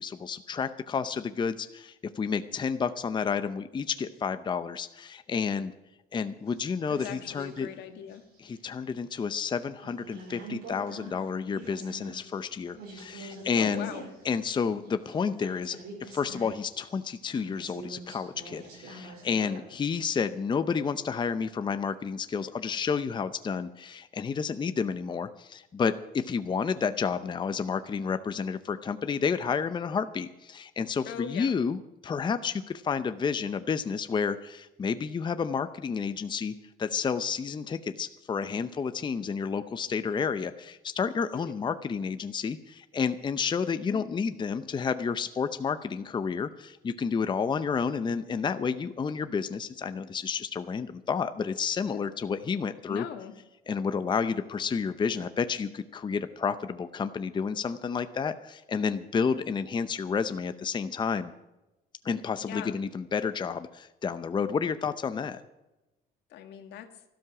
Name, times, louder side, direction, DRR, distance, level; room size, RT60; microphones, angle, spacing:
voice 1, 0.0-5.7 6.1-7.7 8.4-13.9 14.2-36.5 36.8-53.0 53.7-61.3 62.0-65.4, left 6 dB, 25° left, 11 dB, 0.7 m, -30 dB
sound 1, 6.5-7.8 8.1-9.2 9.7-19.6, right 3 dB, 85° right, 5.6 m, -46 dB
voice 2, 6.9-8.2 13.5-14.0 31.1-31.5 41.3-41.6 43.9-44.2 52.9-53.3 62.4-62.8 66.3-66.9, left 9 dB, 80° left, 7 dB, 1.8 m, -40 dB
13.0 x 12.5 x 6.0 m, 0.99 s
cardioid pair, 110°, 17 cm